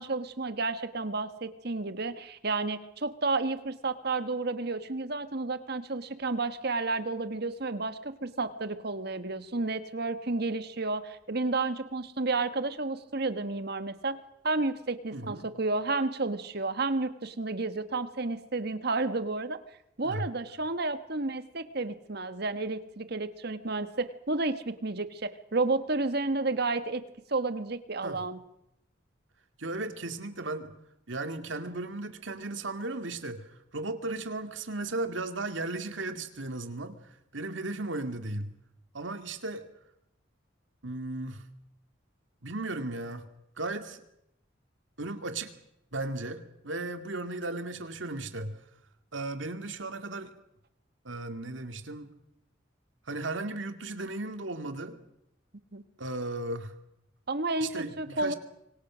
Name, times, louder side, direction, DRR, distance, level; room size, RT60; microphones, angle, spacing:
voice 1, 0.0-14.2 14.4-19.6 20.0-27.0 27.3-28.4 55.7-55.8 57.3-58.3, right 3 dB, 55° right, 11 dB, 1.5 m, -31 dB
voice 2, 15.1-15.5 20.0-20.3 28.0-28.2 29.6-30.7 31.1-33.4 33.7-37.0 37.3-38.5 38.9-39.6 40.8-41.4 42.4-43.2 43.6-44.0 45.0-45.5 45.9-48.6 49.1-50.3 51.0-52.1 53.1-55.0 56.0-56.7 57.6-58.3, right 2 dB, 80° right, 8 dB, 2.3 m, -35 dB
26.0 x 24.5 x 6.3 m, 0.81 s
head